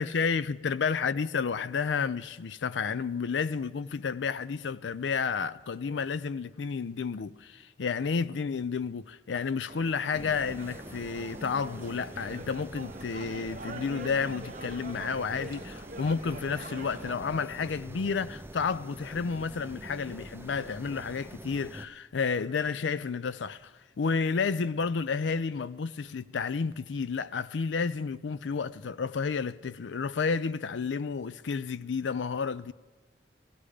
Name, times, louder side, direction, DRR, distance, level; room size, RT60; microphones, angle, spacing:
voice 1, 0.0-32.7, left 5 dB, 90° left, 0.5 m, -31 dB
sound 1, 9.7-17.1, right 2 dB, 45° right, 1.0 m, -44 dB
sound 2, 10.1-21.9, right 1 dB, 15° right, 0.5 m, -45 dB
17.0 x 15.5 x 5.0 m
head